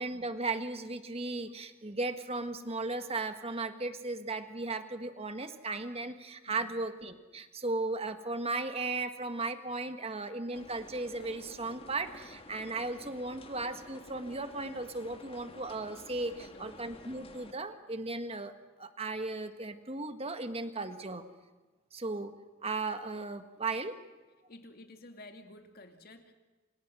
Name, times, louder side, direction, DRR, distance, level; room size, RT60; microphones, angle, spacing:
voice 1, 0.0-18.5 18.8-21.2 21.9-22.3 22.6-24.0, right 3 dB, 30° right, 9 dB, 1.6 m, -36 dB
sound 1, 10.5-17.5, left 2 dB, 25° left, 1.5 m, -52 dB
voice 2, 16.4-16.8 24.5-26.3, left 1 dB, 45° left, 5 dB, 2.5 m, -52 dB
28.5 x 27.5 x 6.3 m, 1.2 s
head